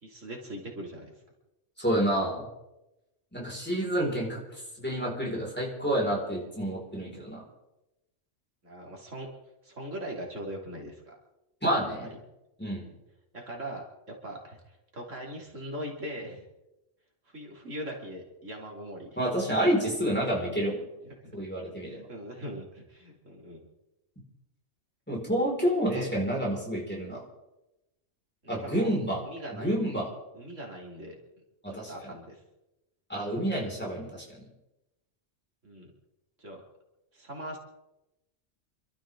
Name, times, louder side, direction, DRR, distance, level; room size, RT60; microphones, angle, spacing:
voice 1, 0.0-1.1 8.6-9.4 9.6-11.1 12.0-12.1 13.3-16.5 17.3-19.1 21.2-21.4 21.8-23.7 25.9-26.1 28.4-28.9 29.3-29.7 30.3-31.1 31.7-32.4 35.6-35.9 36.4-36.6 37.1-37.6, right 1 dB, 80° right, 0 dB, 3.3 m, -40 dB
voice 2, 1.8-2.4 3.3-4.4 4.8-7.4 11.6-12.1 12.6-12.9 19.2-20.8 21.3-22.0 25.1-27.2 28.5-29.2 29.5-30.1 31.6-32.1 33.1-34.4, right 1 dB, 10° left, -4 dB, 5.2 m, -29 dB
28.0 x 13.0 x 3.8 m, 0.95 s
omnidirectional pair, 1.3 m